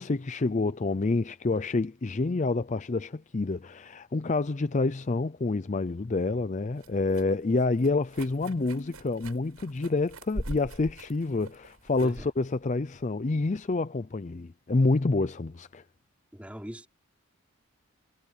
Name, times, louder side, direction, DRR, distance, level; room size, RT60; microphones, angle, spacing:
voice 1, 0.0-15.8, left 3 dB, 35° left, 0.5 m, -28 dB
sound 1, 6.0-13.8, right 1 dB, 80° right, 8.0 m, -43 dB
voice 2, 16.3-16.9, equal, 5° right, 3.8 m, -41 dB
head